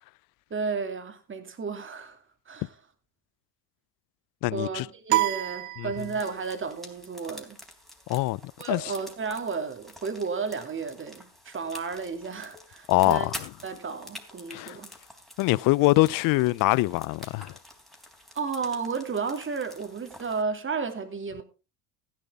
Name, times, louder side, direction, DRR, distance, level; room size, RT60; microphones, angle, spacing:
voice 1, 0.5-2.2 2.5-2.7 4.5-7.6 8.6-13.3 13.6-14.9 18.3-21.4, right 5 dB, 25° right, 2.8 m, -33 dB
voice 2, 4.4-4.9 5.8-5.9 8.1-8.4 8.7-8.9 12.9-13.4 14.5-14.8 15.4-17.5, left 21 dB, 50° left, 0.6 m, -23 dB
sound 1, 5.1-6.5, right 17 dB, 65° right, 0.8 m, -28 dB
sound 2, 6.0-20.4, left 1 dB, ahead, 3.6 m, -47 dB
15.0 x 11.0 x 3.6 m
hypercardioid pair, 75°, 44 cm